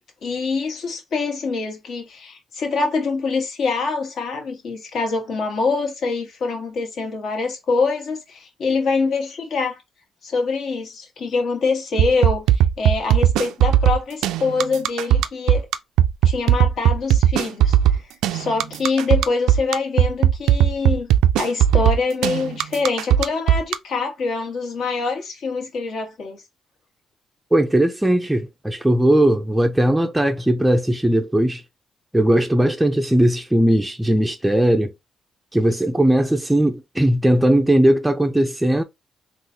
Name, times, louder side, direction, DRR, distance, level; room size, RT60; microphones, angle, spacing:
voice 1, 0.2-9.8 10.2-15.7 16.2-18.0 18.3-21.1 21.4-26.4, left 4 dB, 65° left, 1.5 m, -24 dB
sound 1, 12.0-23.7, right 11 dB, 90° right, 0.3 m, -17 dB
voice 2, 27.5-31.6 32.1-34.9 35.5-38.8, right 1 dB, 5° right, 0.4 m, -18 dB
3.8 x 2.5 x 2.7 m
cardioid pair, 90°, 0 cm